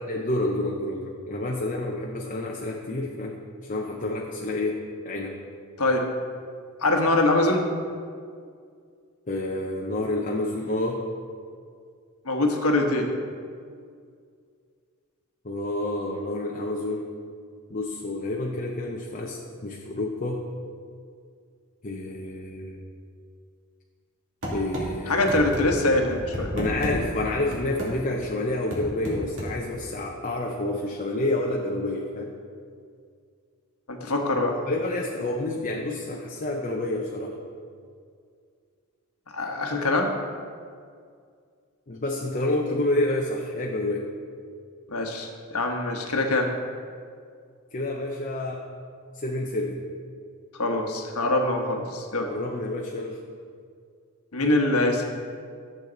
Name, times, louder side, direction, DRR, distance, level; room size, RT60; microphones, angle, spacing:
voice 1, 0.1-3.4 3.7-4.8 5.0-5.4 9.3-11.0 15.4-17.1 17.7-20.4 21.8-22.8 24.5-25.6 26.5-32.3 34.5-37.4 41.9-44.1 47.7-48.6 49.1-49.8 52.3-53.2, left 2 dB, 35° left, -1 dB, 0.8 m, -29 dB
voice 2, 6.8-7.7 12.2-13.1 25.1-26.5 33.9-34.5 39.3-40.1 44.9-46.5 50.6-52.3 54.3-55.0, left 2 dB, 85° left, 2 dB, 1.3 m, -23 dB
sound 1, 24.4-24.9 25.3-25.6 26.1-27.0 27.5-27.9 28.7-29.5, equal, 65° right, 2.5 m, -31 dB
13.0 x 7.6 x 4.0 m, 2.2 s
head